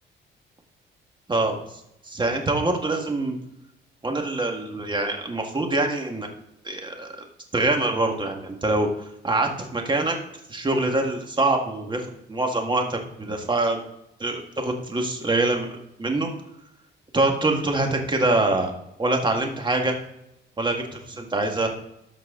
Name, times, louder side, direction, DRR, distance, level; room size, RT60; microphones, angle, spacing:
voice 1, 1.3-1.8 2.0-3.4 4.0-6.3 6.6-7.1 7.5-10.2 10.5-13.8 14.2-15.7 16.0-16.3 17.1-18.7 19.0-19.9 20.6-21.7, right 2 dB, 25° right, 3 dB, 1.8 m, -24 dB
13.0 x 4.6 x 3.8 m, 0.81 s
cardioid pair, 90°, 20 cm